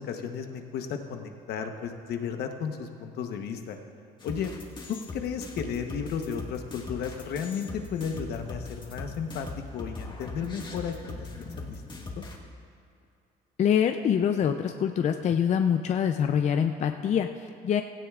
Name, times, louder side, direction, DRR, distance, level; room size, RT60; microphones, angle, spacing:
voice 1, 0.0-3.8 4.2-4.5 4.9-9.5 9.7-12.2, left 7 dB, 70° left, 5 dB, 1.0 m, -34 dB
sound 1, 4.2-12.4, left 3 dB, 25° left, 1.7 m, -40 dB
voice 2, 13.6-17.8, left 8 dB, 45° left, 6 dB, 0.5 m, -25 dB
16.5 x 15.5 x 2.4 m, 2.4 s
cardioid pair, 110°, 17 cm